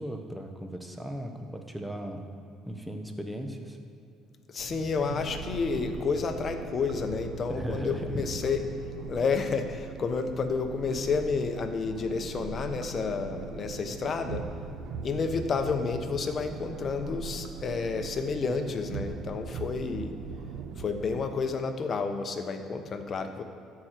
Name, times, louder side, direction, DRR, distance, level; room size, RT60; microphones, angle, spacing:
voice 1, 0.0-2.3 2.6-3.8 7.5-8.1, right 1 dB, 5° right, 4 dB, 1.2 m, -37 dB
voice 2, 4.5-8.6 9.1-14.5 15.0-20.1 20.8-23.4, left 5 dB, 45° left, 7 dB, 1.0 m, -30 dB
sound 1, 4.6-21.2, right 5 dB, 70° right, 0.8 m, -40 dB
13.0 x 4.9 x 5.9 m, 2.6 s
supercardioid pair, 85°, 0 cm